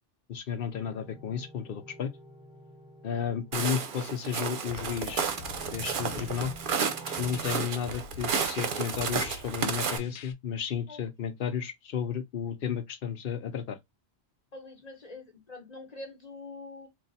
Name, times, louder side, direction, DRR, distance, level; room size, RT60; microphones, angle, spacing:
voice 1, 0.3-2.1 3.0-5.3 5.7-6.5 7.2-13.8, left 8 dB, 60° left, 0.8 m, -33 dB
sound 1, 0.7-7.6, right 2 dB, 5° right, 1.1 m, -50 dB
Walk footsteps, 3.5-10.0, right 6 dB, 55° right, 0.8 m, -32 dB
sound 2, 4.7-10.3, left 5 dB, 90° left, 0.9 m, -46 dB
voice 2, 14.5-16.9, left 2 dB, 40° left, 1.2 m, -44 dB
3.7 x 2.4 x 4.0 m
omnidirectional pair, 1.1 m